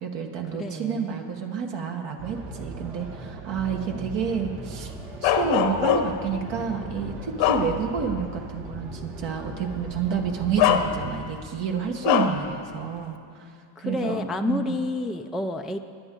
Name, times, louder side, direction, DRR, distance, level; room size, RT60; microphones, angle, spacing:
voice 1, 0.0-4.9 5.2-13.5 13.8-14.8, right 6 dB, 60° right, 2 dB, 1.4 m, -29 dB
voice 2, 0.5-1.2 13.8-15.8, left 2 dB, ahead, 5 dB, 0.3 m, -29 dB
sound 1, 2.2-11.2, right 2 dB, 80° right, 2.3 m, -39 dB
Bark, 5.2-6.3 6.9-8.1 8.6-8.7 9.9-10.0 10.6-11.4 12.0-12.5, left 10 dB, 70° left, 1.0 m, -23 dB
20.5 x 9.9 x 3.8 m, 2.4 s
supercardioid pair, 100°, 49 cm